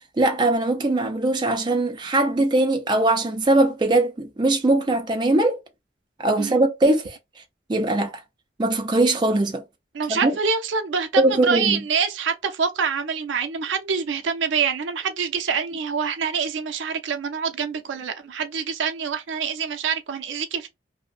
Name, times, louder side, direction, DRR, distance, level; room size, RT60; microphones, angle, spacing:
voice 1, 0.2-5.6 6.2-7.2 7.7-8.2 8.6-9.6 10.1-10.3 11.2-11.8, right 2 dB, 25° right, 0.4 m, -21 dB
voice 2, 9.9-20.7, right 6 dB, 80° right, 0.4 m, -26 dB
2.4 x 2.0 x 2.5 m
head